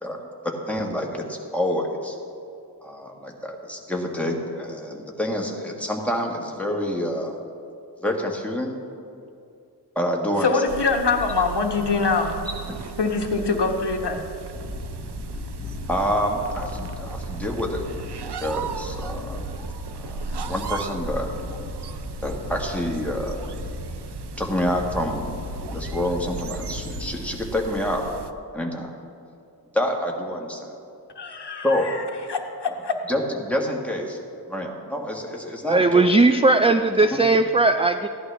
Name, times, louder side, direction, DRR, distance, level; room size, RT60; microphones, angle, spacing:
voice 1, 0.0-2.2 2.8-7.4 8.0-8.7 10.0-10.5 15.9-17.8 18.4-19.5 19.9-21.4 22.2-23.4 24.4-28.0 28.5-28.9 29.7-30.7 31.6-31.9 32.7-32.8 33.1-34.2 34.5-36.1 37.0-37.3, left 1 dB, 5° left, -1 dB, 1.7 m, -27 dB
voice 2, 10.4-12.4 13.0-14.3 31.2-33.0, left 4 dB, 80° left, 3 dB, 1.2 m, -24 dB
sound 1, 10.7-28.3, right 6 dB, 75° right, 0.6 m, -36 dB
sound 2, 14.5-27.4, left 3 dB, 30° left, 1.0 m, -37 dB
voice 3, 35.6-38.1, right 3 dB, 15° right, 8 dB, 0.3 m, -18 dB
15.5 x 11.0 x 3.4 m, 2.5 s
wide cardioid pair, 50°, 40 cm